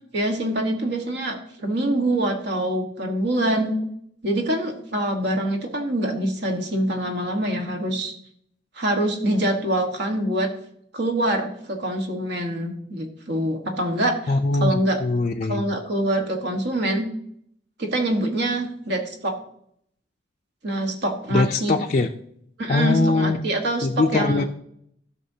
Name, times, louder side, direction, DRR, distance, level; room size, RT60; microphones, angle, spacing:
voice 1, 0.1-3.7 4.2-8.1 8.8-10.5 10.9-14.3 14.6-15.0 15.5-17.1 17.8-19.3 20.6-21.8 22.6-24.4, right 1 dB, 60° right, 3 dB, 1.4 m, -25 dB
voice 2, 14.3-15.7 21.3-22.1 22.7-23.5 23.8-24.4, left 3 dB, 40° left, 2 dB, 0.4 m, -22 dB
12.5 x 6.0 x 2.8 m, 0.69 s
head